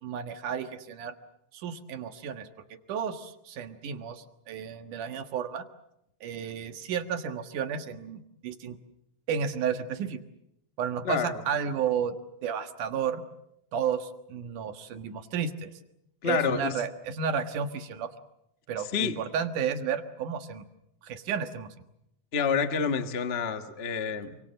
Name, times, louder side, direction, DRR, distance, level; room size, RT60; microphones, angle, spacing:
voice 1, 0.0-1.1 1.5-2.5 2.9-5.7 6.2-8.8 9.3-10.2 10.8-12.2 12.4-13.2 13.7-15.7 16.2-18.1 18.7-20.6 21.0-21.7, right 7 dB, 85° right, 8 dB, 3.1 m, -32 dB
voice 2, 16.2-16.7 18.9-19.2 22.3-24.4, left 6 dB, 35° left, 8 dB, 0.9 m, -28 dB
28.0 x 24.5 x 7.6 m, 0.79 s
omnidirectional pair, 3.5 m